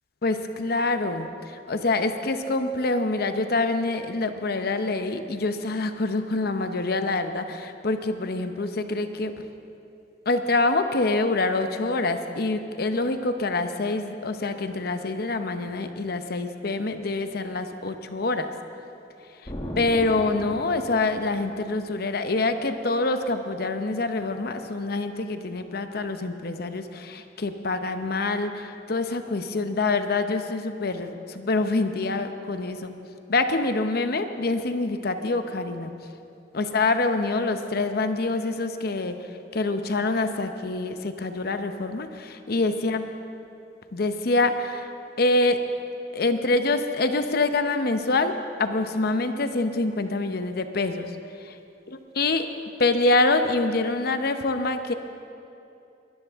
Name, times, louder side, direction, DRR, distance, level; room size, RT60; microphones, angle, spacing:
voice 1, 0.2-9.3 10.3-18.5 19.4-32.9 33.3-35.9 36.5-39.2 39.5-43.0 43.9-44.9 45.2-45.6 46.1-51.1 51.4-51.6 52.2-52.5 52.8-54.9, left 2 dB, 60° left, 8 dB, 0.8 m, -26 dB
Explosion, 19.5-22.1, equal, 30° left, 1.3 m, -37 dB
21.5 x 12.5 x 3.6 m, 2.7 s
head